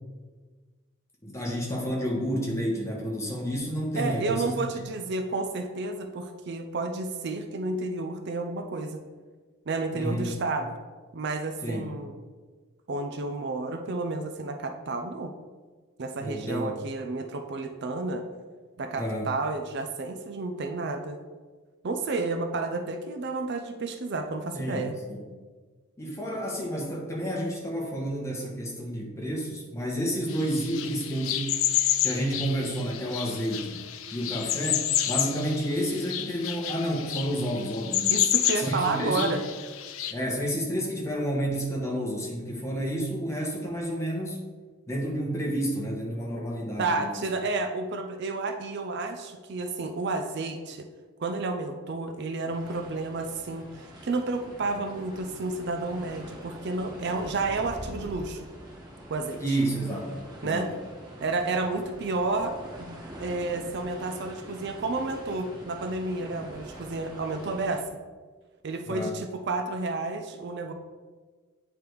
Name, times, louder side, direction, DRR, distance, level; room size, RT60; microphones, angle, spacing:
voice 1, 1.2-4.7 9.9-10.3 11.6-11.9 16.2-16.7 19.0-19.3 24.5-25.2 26.0-31.6 32.0-33.8 34.1-38.1 38.6-39.4 40.1-44.4 44.9-47.2 59.4-60.1 60.4-60.7 68.9-69.1, equal, 15° left, -2 dB, 1.2 m, -30 dB
voice 2, 4.0-9.0 9.7-10.8 11.1-12.2 12.9-15.3 16.0-18.2 18.8-21.2 21.8-24.9 38.1-39.4 46.8-50.9 51.2-58.5 59.1-59.6 60.4-60.7 61.2-67.8 68.6-70.7, right 3 dB, 50° right, 5 dB, 0.5 m, -31 dB
sound 1, 30.3-40.1, left 11 dB, 70° left, 0.5 m, -30 dB
sound 2, 52.5-67.8, equal, 20° right, 1.0 m, -44 dB
8.6 x 3.3 x 4.6 m, 1.4 s
head